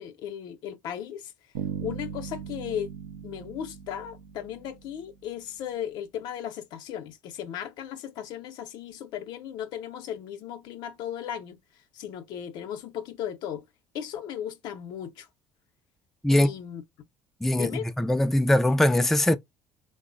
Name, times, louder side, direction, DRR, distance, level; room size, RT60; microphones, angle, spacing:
voice 1, 0.0-1.3 1.8-2.9 3.2-11.6 11.9-13.6 13.9-15.3 16.3-16.8 17.5-17.9, left 10 dB, 60° left, 0.5 m, -36 dB
Bass guitar, 1.5-5.3, right 8 dB, 80° right, 0.4 m, -38 dB
voice 2, 17.4-19.4, left 1 dB, 5° left, 0.3 m, -22 dB
3.3 x 2.0 x 2.4 m
hypercardioid pair, 65°, 8 cm